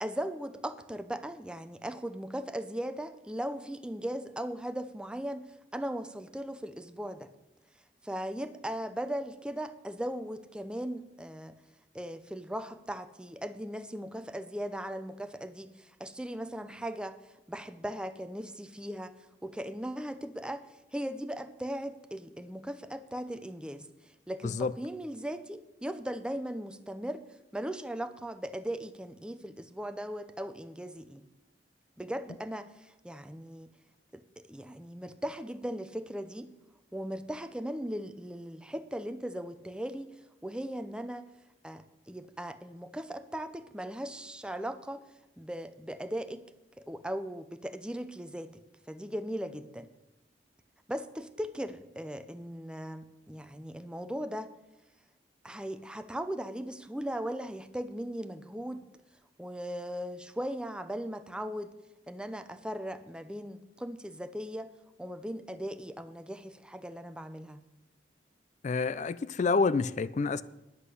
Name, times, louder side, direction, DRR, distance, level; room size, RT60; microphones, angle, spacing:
voice 1, 0.0-5.5 5.7-7.3 8.0-11.6 11.9-17.2 17.5-19.1 19.4-20.7 20.9-27.2 27.5-31.3 32.0-33.7 34.1-36.5 36.9-40.1 40.4-41.2 41.6-45.0 45.4-46.4 46.8-48.5 48.9-49.9 50.9-54.5 55.4-58.8 59.4-61.7 62.1-64.7 65.0-67.6, equal, 5° right, 0.6 m, -38 dB
voice 2, 68.6-70.4, left 4 dB, 40° left, 0.4 m, -28 dB
10.0 x 7.7 x 8.2 m
head